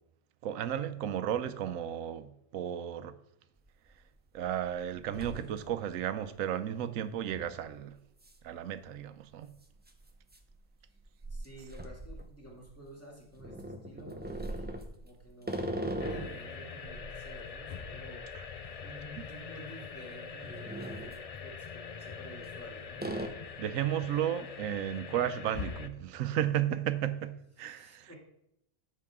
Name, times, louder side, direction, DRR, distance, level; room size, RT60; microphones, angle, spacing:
voice 1, 0.4-3.1 4.3-8.0 8.4-9.5 23.6-28.1, right 10 dB, 85° right, 1.1 m, -33 dB
sound 1, 3.6-3.7 4.2-4.6 4.9-5.9 6.3-6.4 7.3-7.6 8.2-8.4 8.7-8.8 9.7-12.8 13.4-16.5 16.9-19.2 19.5-19.7 20.2-21.2 22.1-22.6 23.0-23.3, right 1 dB, 10° right, 0.5 m, -40 dB
voice 2, 11.3-23.1 27.6-28.2, right 1 dB, 10° left, 2.3 m, -51 dB
sound 2, 16.0-25.9, left 6 dB, 55° left, 0.4 m, -43 dB
13.5 x 5.7 x 3.6 m
omnidirectional pair, 1.3 m